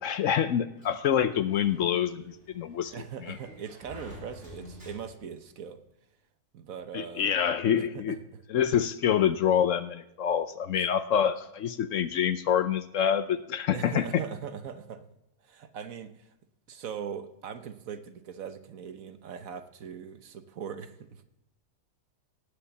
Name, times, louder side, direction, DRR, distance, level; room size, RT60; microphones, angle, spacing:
voice 1, 0.0-2.9 3.3-3.4 6.9-8.2 8.5-14.2, left 9 dB, 65° left, 12 dB, 0.9 m, -26 dB
Sliding door, 0.8-5.4, left 1 dB, 45° right, 3.6 m, -49 dB
voice 2, 2.9-5.8 6.5-7.3 7.8-8.4 10.7-10.9 13.7-15.1 15.4-16.3 16.7-21.2, right 7 dB, 65° right, 10 dB, 1.3 m, -40 dB
18.0 x 6.9 x 7.0 m, 0.88 s
omnidirectional pair, 1.6 m